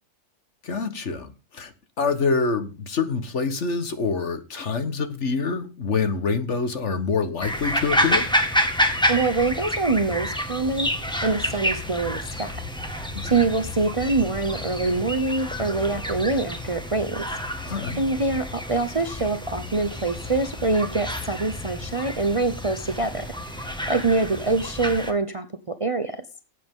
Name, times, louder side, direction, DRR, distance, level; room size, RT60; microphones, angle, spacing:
voice 1, 0.6-1.7 2.0-8.3 13.1-13.3 17.6-18.0, left 4 dB, 55° left, 1.6 m, -26 dB
sound 1, 7.4-25.1, equal, 5° left, 1.6 m, -29 dB
voice 2, 9.1-10.9 11.2-12.6 12.9-17.2 17.6-23.2 23.6-25.5 25.8-26.2, right 3 dB, 30° right, 0.7 m, -25 dB
18.0 x 8.5 x 3.7 m
omnidirectional pair, 1.4 m